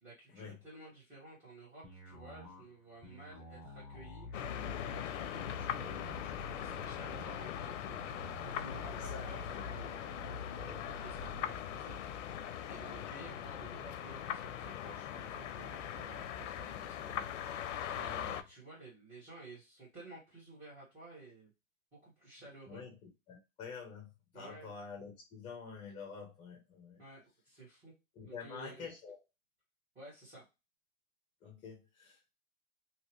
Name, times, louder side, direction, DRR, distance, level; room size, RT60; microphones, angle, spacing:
voice 1, 0.0-4.3 4.9-12.2 12.7-17.3 17.9-21.5 22.0-22.8 24.3-24.7 27.0-27.9 28.2-28.8 29.9-30.4, right 2 dB, 20° right, 1.5 m, -53 dB
sound 1, 1.8-11.4, left 2 dB, ahead, 1.0 m, -49 dB
sound 2, 4.3-18.4, left 9 dB, 60° left, 0.5 m, -41 dB
voice 2, 8.9-9.6 12.8-13.1 18.1-18.4 22.7-22.9 23.3-27.0 28.2-29.2 31.4-32.3, left 5 dB, 15° left, 0.7 m, -48 dB
2.8 x 2.8 x 3.0 m
hypercardioid pair, 130°, 42 cm